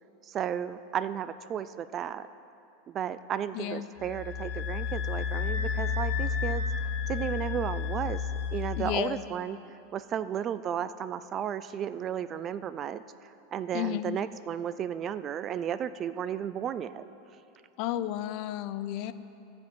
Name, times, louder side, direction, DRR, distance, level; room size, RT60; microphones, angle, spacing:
voice 1, 0.2-2.3 2.9-9.6 9.9-17.0, right 9 dB, 30° right, 14 dB, 0.3 m, -34 dB
voice 2, 3.5-3.9 8.8-9.2 13.7-14.2 17.8-19.1, left 12 dB, 50° left, 13 dB, 0.4 m, -32 dB
sound 1, 4.0-9.0, left 6 dB, 80° left, 1.0 m, -31 dB
15.0 x 5.2 x 8.0 m, 2.8 s
supercardioid pair, 150°, 0 cm